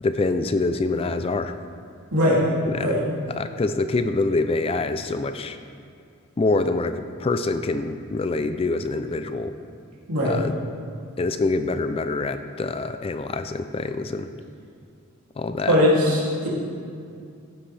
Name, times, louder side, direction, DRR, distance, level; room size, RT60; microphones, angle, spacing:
voice 1, 0.0-1.6 2.7-3.0 3.4-5.6 6.4-9.5 10.2-10.5 11.2-14.3 15.4-15.8, left 3 dB, 25° left, 9 dB, 0.3 m, -25 dB
voice 2, 2.1-2.4 2.8-3.0 10.1-10.4 15.7-16.5, left 1 dB, 80° right, -6 dB, 2.8 m, -20 dB
14.5 x 7.8 x 3.3 m, 2.3 s
head